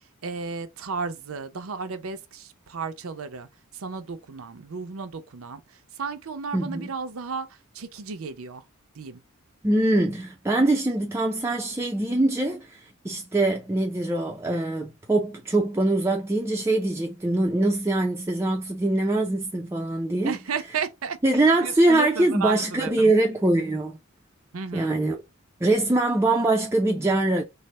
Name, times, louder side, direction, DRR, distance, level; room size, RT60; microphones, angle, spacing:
voice 1, 0.2-3.5 3.7-8.6 8.9-9.2 20.2-23.1 24.5-25.0, right 5 dB, 90° right, 0.6 m, -34 dB
voice 2, 6.5-6.9 9.6-20.4 21.2-24.0 24.7-25.2 25.6-27.4, right 2 dB, 15° right, 0.4 m, -23 dB
3.2 x 2.0 x 4.1 m
head